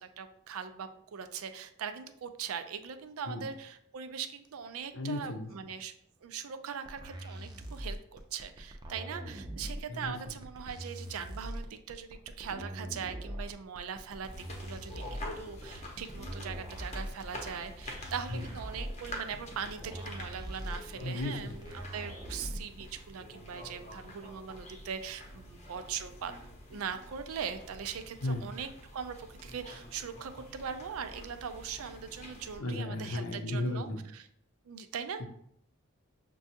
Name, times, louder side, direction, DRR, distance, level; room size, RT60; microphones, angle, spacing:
voice 1, 0.0-5.9 6.2-14.3 14.6-15.0 15.4-26.3 26.7-34.3 34.7-35.2, right 7 dB, 85° right, 9 dB, 0.4 m, -41 dB
voice 2, 4.9-5.5 9.9-10.1 18.3-18.4 21.0-21.6 28.2-28.4 32.6-34.0 35.2-35.3, left 2 dB, 70° left, 5 dB, 0.6 m, -34 dB
sound 1, 6.8-22.8, equal, 20° right, 0.4 m, -42 dB
sound 2, 14.2-32.6, left 1 dB, 35° left, 0.7 m, -47 dB
6.0 x 2.3 x 2.8 m, 0.71 s
head